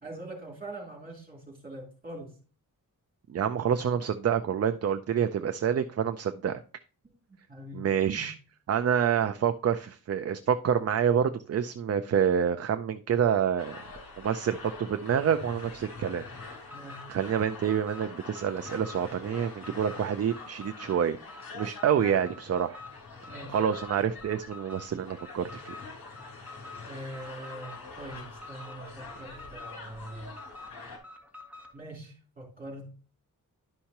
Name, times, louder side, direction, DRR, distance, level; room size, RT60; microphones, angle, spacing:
voice 1, 0.0-2.3 7.0-7.1 7.5-8.2 16.7-17.1 23.3-23.6 26.8-30.3 31.7-32.9, right 1 dB, 25° right, -2 dB, 3.5 m, -43 dB
voice 2, 3.3-6.6 7.7-8.3 8.7-13.8 14.2-16.2 17.1-21.2 21.5-22.8 23.5-25.7, right 8 dB, 45° right, 9 dB, 0.5 m, -27 dB
sound 1, 13.6-31.0, left 3 dB, 85° left, 3.0 m, -46 dB
Alarm, 16.3-31.8, left 3 dB, 5° right, 1.7 m, -48 dB
11.5 x 5.5 x 2.9 m, 0.38 s
wide cardioid pair, 170°, 36 cm